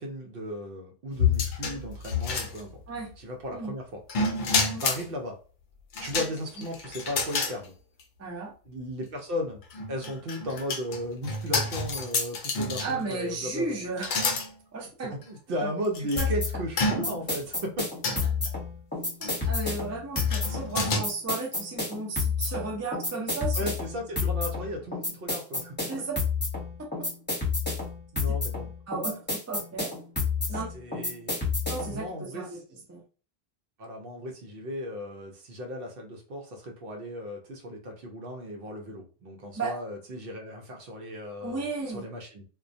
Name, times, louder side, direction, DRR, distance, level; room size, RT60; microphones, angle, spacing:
voice 1, 0.0-2.8 3.2-4.0 4.8-5.4 6.0-7.7 8.7-9.6 9.9-13.8 15.0-17.9 23.6-25.7 28.1-28.7 30.5-31.4 31.9-32.8 33.8-42.4, equal, 65° right, 2 dB, 0.8 m, -36 dB
sound 1, 1.2-3.0 4.1-5.1 5.9-7.6 8.0-8.1 9.6-13.1 14.0-14.5 15.2-15.3 15.9-16.3 16.8-17.3 18.0-18.5 19.2-19.5 20.2-21.0, left 4 dB, 60° left, 0.6 m, -29 dB
voice 2, 8.2-8.5 12.8-14.2 14.7-15.1 15.6-15.7 16.2-16.3 19.2-23.6 25.9-26.2 28.9-29.2 29.5-29.9 30.5-30.7 31.7-32.6 32.9-33.0 39.5-39.8 41.4-42.0, right 3 dB, 25° right, 0 dB, 0.4 m, -34 dB
sound 2, 16.2-32.0, left 4 dB, 10° left, 0.9 m, -30 dB
2.2 x 2.2 x 2.6 m, 0.37 s
omnidirectional pair, 1.1 m